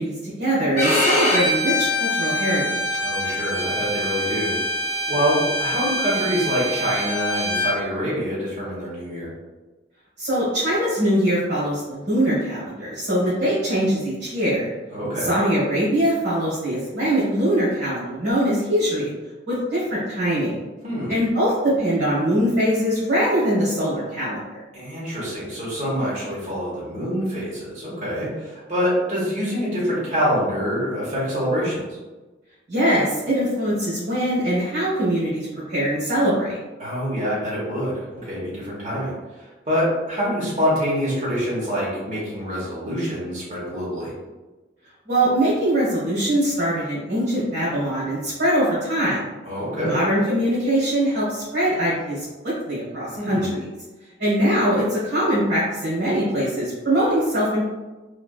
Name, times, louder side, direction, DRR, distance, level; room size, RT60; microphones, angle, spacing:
voice 1, 0.0-3.0 10.2-14.7 15.2-19.1 19.5-20.6 21.1-24.6 32.7-36.6 45.1-49.2 49.8-52.2 52.7-53.7 54.2-57.6, right 1 dB, 80° right, -10 dB, 1.2 m, -22 dB
Bowed string instrument, 0.8-7.7, left 1 dB, 40° left, 0.7 m, -24 dB
voice 2, 3.0-9.3 14.9-15.3 20.8-21.2 24.7-32.0 36.8-44.1 49.5-50.0 53.2-53.5, equal, 40° right, -7 dB, 1.0 m, -26 dB
3.2 x 2.4 x 2.3 m, 1.2 s
head